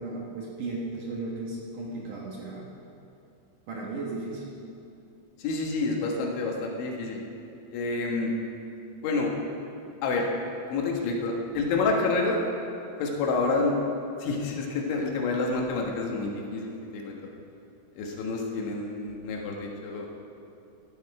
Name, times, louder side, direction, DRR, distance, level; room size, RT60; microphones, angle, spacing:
voice 1, 0.0-2.7 3.7-4.4, right 3 dB, 60° right, -3 dB, 2.4 m, -35 dB
voice 2, 5.4-7.2 7.7-8.3 9.0-9.3 10.0-10.3 10.7-12.4 13.0-13.8 14.2-17.2 18.0-20.1, left 3 dB, 90° left, 0 dB, 4.0 m, -28 dB
16.5 x 11.5 x 4.9 m, 2.7 s
omnidirectional pair, 5.2 m